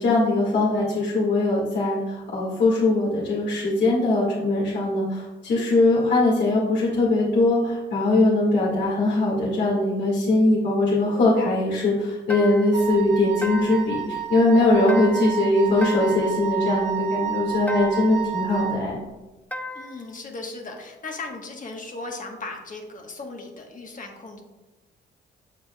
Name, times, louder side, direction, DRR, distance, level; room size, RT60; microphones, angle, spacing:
voice 1, 0.0-19.0, left 2 dB, 60° left, -6 dB, 2.0 m, -21 dB
sound 1, 12.3-12.8 13.4-14.0 14.9-15.4 15.8-16.4 17.7-18.2 19.5-20.0, left 2 dB, 10° left, 0.4 m, -35 dB
Wind instrument woodwind instrument, 12.7-18.8, right 11 dB, 65° right, 0.8 m, -30 dB
voice 2, 19.7-24.4, left 3 dB, 40° left, 2 dB, 1.3 m, -37 dB
7.2 x 6.9 x 2.4 m, 1.1 s
cardioid pair, 90°, 20 cm